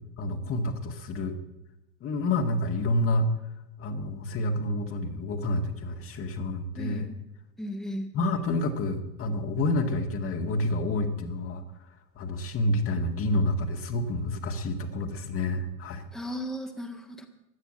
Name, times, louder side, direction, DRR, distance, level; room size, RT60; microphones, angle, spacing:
voice 1, 0.2-1.3 2.0-3.3 3.8-7.1 8.1-11.6 12.2-16.0, left 1 dB, 30° left, 5 dB, 1.9 m, -28 dB
voice 2, 6.8-7.1 7.6-8.1 16.1-17.3, equal, ahead, 3 dB, 1.7 m, -35 dB
16.0 x 11.5 x 7.7 m, 0.89 s
figure-of-eight pair, 80°, 42 cm